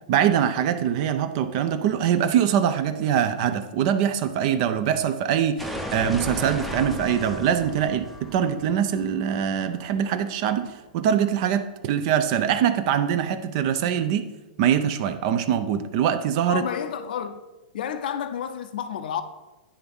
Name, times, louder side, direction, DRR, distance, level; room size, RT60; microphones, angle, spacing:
voice 1, 0.1-14.3 14.6-16.6, right 9 dB, 45° right, 0.5 m, -23 dB
sound 1, 5.6-10.4, equal, ahead, 0.6 m, -35 dB
voice 2, 16.5-17.4 17.7-19.2, left 8 dB, 70° left, 0.6 m, -30 dB
10.0 x 3.5 x 5.4 m
hypercardioid pair, 150°, 5 cm